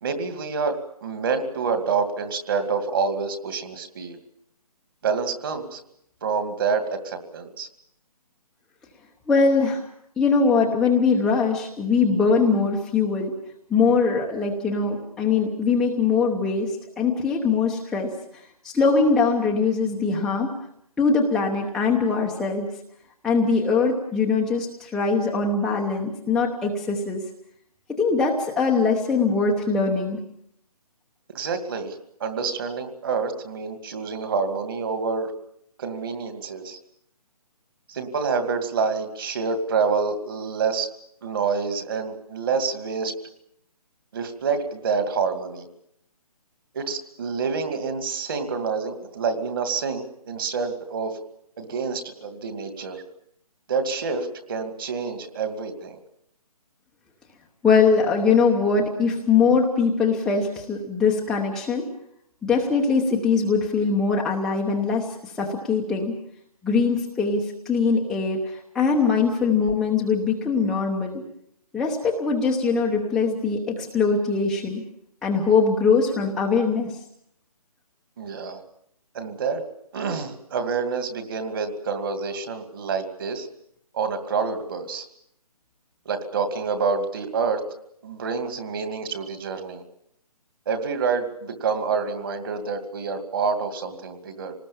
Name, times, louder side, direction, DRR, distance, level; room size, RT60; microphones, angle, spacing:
voice 1, 0.0-4.2 5.0-5.8 6.2-7.7 31.3-31.9 32.2-35.3 35.8-36.8 37.9-40.9 41.2-43.1 44.1-45.7 46.7-51.2 51.6-53.0 53.7-56.0 78.2-78.6 79.1-79.6 79.9-83.5 83.9-85.0 86.1-87.6 88.0-89.8 90.7-94.5, right 5 dB, 35° right, 8 dB, 2.5 m, -27 dB
voice 2, 9.3-9.8 10.2-13.3 13.7-20.5 21.0-22.7 23.2-27.2 28.0-30.2 57.6-61.9 62.4-66.1 66.6-71.2 71.7-74.8 75.2-76.9, left 4 dB, 5° left, -4 dB, 0.9 m, -22 dB
26.5 x 19.5 x 7.1 m, 0.71 s
hypercardioid pair, 165°, 20 cm